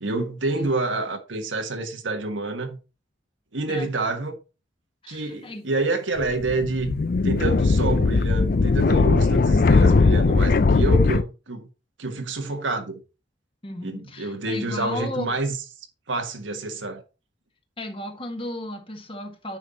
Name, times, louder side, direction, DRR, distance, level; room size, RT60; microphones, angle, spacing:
voice 1, 0.0-2.8 3.5-4.4 5.1-11.7 12.0-13.0 13.8-15.6 16.1-17.0, right 2 dB, 90° right, 1.5 m, -28 dB
voice 2, 5.0-5.7 13.6-15.4 17.8-19.6, left 1 dB, 30° left, 1.4 m, -34 dB
sound 1, 6.2-11.2, left 3 dB, 50° left, 0.4 m, -19 dB
9.3 x 5.3 x 4.1 m
head